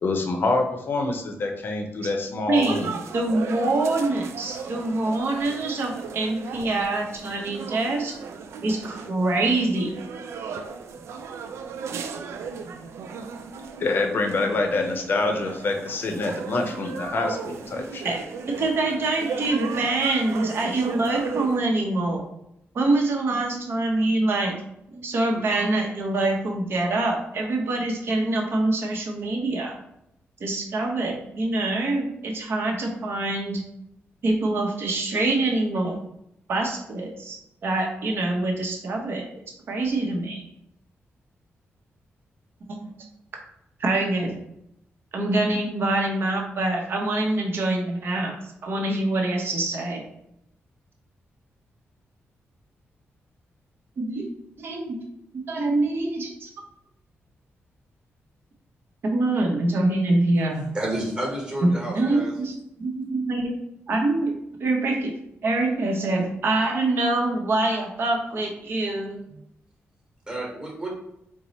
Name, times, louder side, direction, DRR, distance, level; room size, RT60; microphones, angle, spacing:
voice 1, 0.0-2.9 13.8-18.2, left 3 dB, 50° left, 4 dB, 0.6 m, -26 dB
voice 2, 2.5-8.1 8.6-9.9 18.0-18.2 18.5-22.2 22.7-24.6 24.9-29.8 30.4-33.6 34.2-36.0 36.5-39.3 39.7-40.4 42.8-42.9 43.8-44.4 45.1-48.4 48.6-50.0 54.0-55.0 55.5-56.5 59.0-60.7 61.6-63.6 63.9-64.3 64.6-69.2, right 2 dB, 55° right, 1 dB, 0.8 m, -25 dB
sound 1, 2.5-21.6, right 6 dB, 85° right, 0.4 m, -36 dB
voice 3, 60.7-62.3 70.3-70.9, right 1 dB, 20° right, -2 dB, 1.3 m, -30 dB
4.5 x 2.0 x 4.0 m, 0.79 s
wide cardioid pair, 150°, 5 cm